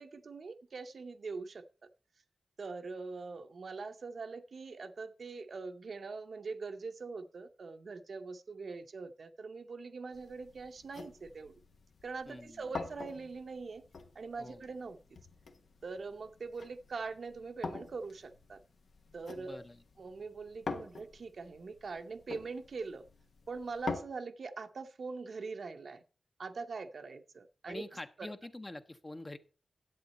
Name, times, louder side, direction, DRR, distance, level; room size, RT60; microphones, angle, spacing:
voice 1, 0.0-1.6 2.6-11.5 12.0-13.8 14.1-15.0 15.8-18.6 19.1-19.6 20.0-23.1 23.5-26.0 26.4-28.3, right 4 dB, 65° right, 8 dB, 0.7 m, -43 dB
sound 1, 10.1-24.0, left 4 dB, 85° left, 1.1 m, -46 dB
voice 2, 12.3-12.7 14.4-14.6 19.4-19.8 27.7-29.4, left 2 dB, 25° left, 9 dB, 0.7 m, -46 dB
11.0 x 8.1 x 4.1 m, 0.37 s
wide cardioid pair, 130°, 0 cm